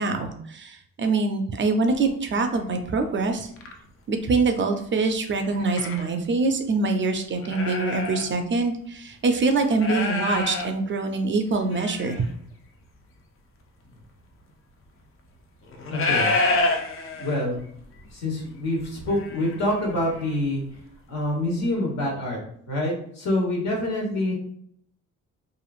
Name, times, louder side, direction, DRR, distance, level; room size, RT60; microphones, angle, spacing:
voice 1, 0.0-3.5 4.1-12.3, right 3 dB, 40° right, 5 dB, 0.4 m, -24 dB
sound 1, 1.9-2.1 2.8-2.9 3.4-3.7 5.4-6.1 6.7-6.8 7.3-8.3 8.6-8.7 9.7-10.7 11.5-12.3 13.9-14.0 15.6-17.6 17.9-18.1 18.4-20.4 20.7-20.8, left 2 dB, 45° left, 0.6 m, -28 dB
voice 2, 15.9-16.3 17.1-17.6 18.1-20.6 21.1-22.4 22.7-24.3, left 1 dB, 60° left, -2 dB, 1.3 m, -26 dB
3.0 x 2.5 x 2.4 m, 0.67 s
cardioid pair, 90°, 30 cm